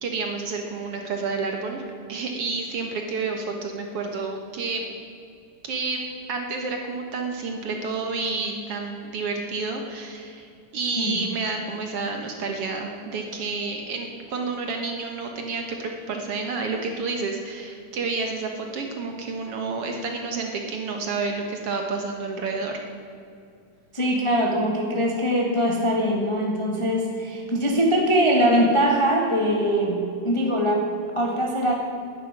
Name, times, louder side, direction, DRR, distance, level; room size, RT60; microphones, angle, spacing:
voice 1, 0.0-1.8 2.1-4.9 5.6-6.0 6.3-22.8, right 4 dB, 60° right, 3 dB, 1.9 m, -30 dB
voice 2, 23.9-31.7, equal, 20° left, 0 dB, 0.8 m, -22 dB
11.5 x 8.5 x 9.7 m, 2.5 s
omnidirectional pair, 3.6 m